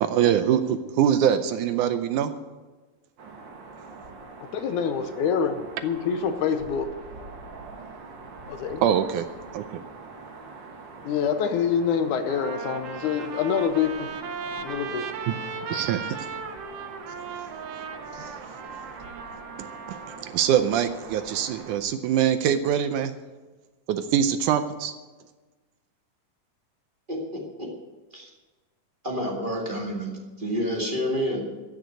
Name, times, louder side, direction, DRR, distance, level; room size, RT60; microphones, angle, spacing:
voice 1, 0.0-2.3 8.8-9.3 9.5-9.8 15.3-15.4 15.7-16.2 18.1-18.4 19.6-23.1 23.9-24.9, right 9 dB, 80° right, 10 dB, 2.0 m, -24 dB
sound 1, 3.2-21.8, right 4 dB, 45° right, 1.6 m, -44 dB
voice 2, 4.5-6.9 8.5-8.8 11.0-14.1 14.6-15.1, left 7 dB, 75° left, 8 dB, 2.2 m, -26 dB
Trumpet, 11.6-11.7 12.3-20.2, right 5 dB, 65° right, 1.7 m, -37 dB
voice 3, 27.1-27.7 28.1-28.3 29.0-31.4, equal, 20° right, -2 dB, 1.9 m, -29 dB
14.5 x 6.6 x 9.3 m, 1.2 s
omnidirectional pair, 3.8 m